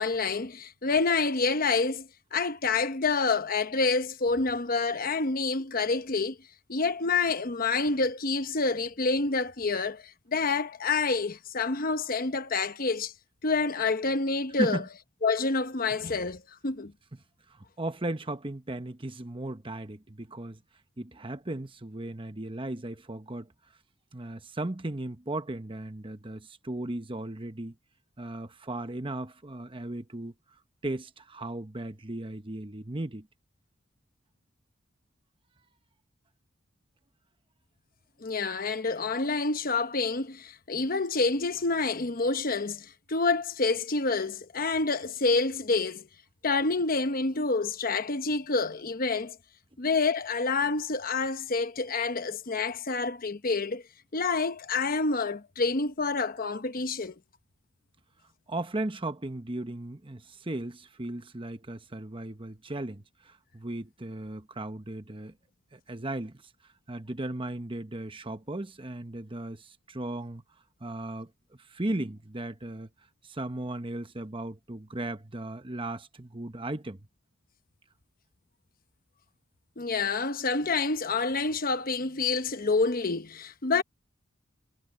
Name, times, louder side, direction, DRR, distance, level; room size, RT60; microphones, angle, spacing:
voice 1, 0.0-6.4 6.7-13.1 13.4-14.8 15.2-16.9 38.2-46.1 46.4-49.4 49.8-53.8 54.1-57.1 79.8-83.8, left 4 dB, 45° left, 1.0 m, -28 dB
voice 2, 17.5-20.6 21.0-23.5 24.1-27.7 28.2-30.3 30.8-33.3 58.5-65.4 65.7-66.4 66.9-70.4 70.8-71.3 71.6-72.9 73.2-77.0, right 1 dB, 25° right, 1.1 m, -36 dB
head